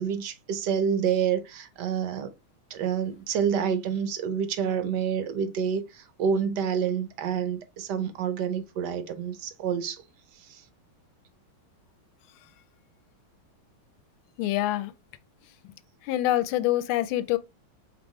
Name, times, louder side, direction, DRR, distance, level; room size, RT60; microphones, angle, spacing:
voice 1, 0.0-2.3 2.7-10.0 10.5-10.6, right 7 dB, 65° right, 1.1 m, -28 dB
voice 2, 14.4-14.9 15.6-15.7 16.0-17.4, left 14 dB, 90° left, 1.4 m, -25 dB
5.2 x 3.3 x 3.0 m
omnidirectional pair, 2.2 m